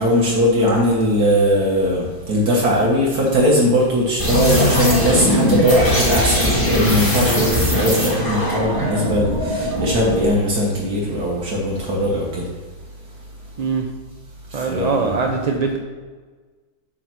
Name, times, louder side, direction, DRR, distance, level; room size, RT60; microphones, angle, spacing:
voice 1, 0.0-12.5 14.5-15.1, equal, 80° right, -4 dB, 1.8 m, -19 dB
sound 1, 4.2-10.4, equal, 15° left, 2.1 m, -20 dB
voice 2, 14.5-15.8, right 4 dB, 55° right, 3 dB, 0.4 m, -22 dB
9.3 x 4.1 x 5.9 m, 1.4 s
omnidirectional pair, 1.6 m